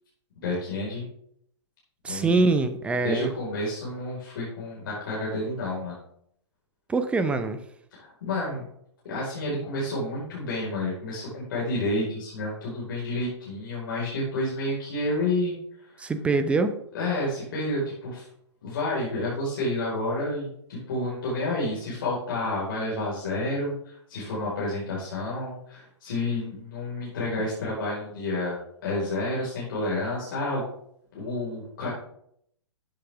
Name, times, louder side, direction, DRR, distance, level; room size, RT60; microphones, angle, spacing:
voice 1, 0.4-1.0 2.1-2.4 3.0-6.0 7.9-8.6 9.0-15.9 16.9-18.3 18.6-30.6 31.1-31.9, left 2 dB, 50° left, -5 dB, 4.6 m, -30 dB
voice 2, 2.0-3.3 6.9-7.6 16.0-16.8, right 3 dB, 10° right, 10 dB, 0.7 m, -24 dB
12.5 x 8.5 x 3.5 m, 0.70 s
figure-of-eight pair, 115°, 15 cm